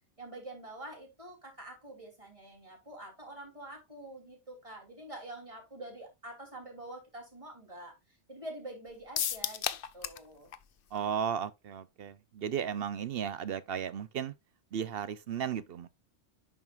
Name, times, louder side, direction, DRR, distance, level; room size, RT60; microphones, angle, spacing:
voice 1, 0.2-10.5, right 1 dB, 25° right, 3.2 m, -46 dB
sound 1, 9.2-10.3 10.5-10.6 11.0-11.1, left 9 dB, 60° left, 0.7 m, -33 dB
voice 2, 10.9-14.3 14.7-15.9, right 8 dB, 60° right, 0.8 m, -35 dB
10.5 x 5.0 x 2.4 m
omnidirectional pair, 1.2 m